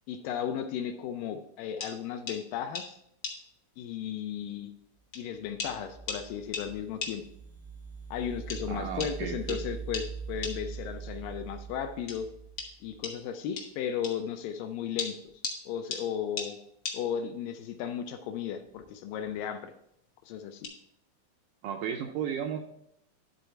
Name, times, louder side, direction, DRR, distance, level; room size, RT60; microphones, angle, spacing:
voice 1, 0.1-3.0 3.8-4.7 5.2-7.2 8.1-12.3 12.8-15.2 15.7-16.6 16.9-19.7 20.3-20.7, left 8 dB, 80° left, 7 dB, 2.1 m, -35 dB
sound 1, 1.8-2.0 2.3-2.4 2.7-2.9 3.2-3.4 4.3-4.4 5.1-5.2 5.6-5.8 6.1-6.2 6.5-6.7 7.0-7.2 8.5-8.6 9.0-9.1 9.5-9.6 9.9-10.1 10.4-10.6 12.1-12.2 12.6-12.7 13.0-13.2 13.6-13.7 14.0-14.2 15.0-15.6 15.9-16.1 16.4-16.5 16.9-17.0 18.6-18.9 19.2-19.5 20.6-20.7, left 4 dB, 65° left, 1.1 m, -36 dB
sound 2, 5.5-13.0, right 5 dB, 15° right, 0.3 m, -42 dB
voice 2, 8.7-9.6 21.6-22.6, right 8 dB, 80° right, 4 dB, 1.9 m, -34 dB
11.5 x 4.0 x 4.4 m, 0.74 s
omnidirectional pair, 4.2 m